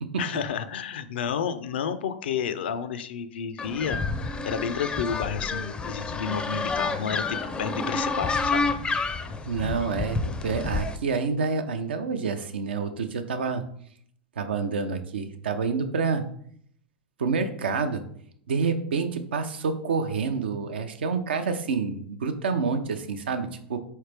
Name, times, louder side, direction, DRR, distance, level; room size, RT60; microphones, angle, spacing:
voice 1, 0.2-8.7, left 7 dB, 75° left, 11 dB, 0.4 m, -31 dB
sound 1, 3.6-11.0, left 4 dB, 15° left, 0.4 m, -29 dB
voice 2, 9.5-13.6 14.4-16.2 17.2-18.0 18.5-23.8, right 5 dB, 80° right, 8 dB, 0.5 m, -28 dB
4.1 x 3.2 x 3.3 m, 0.63 s
hypercardioid pair, 105°, 6 cm